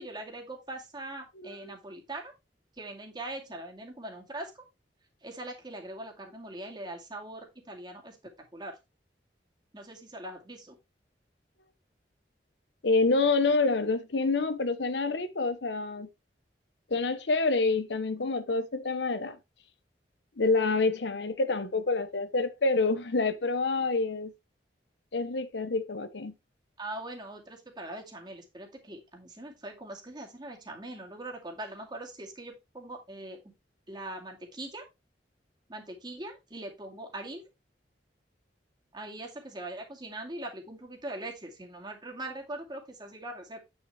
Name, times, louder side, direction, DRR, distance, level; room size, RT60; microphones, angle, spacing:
voice 1, 0.0-2.3 2.8-4.6 5.2-8.8 9.7-10.8 26.8-33.4 33.9-34.8 35.7-37.4 38.9-43.6, right 1 dB, 25° right, 2.2 m, -41 dB
voice 2, 12.8-16.1 16.9-19.4 20.4-24.3 25.1-26.3, left 3 dB, 75° left, 0.9 m, -27 dB
8.9 x 6.1 x 3.3 m
head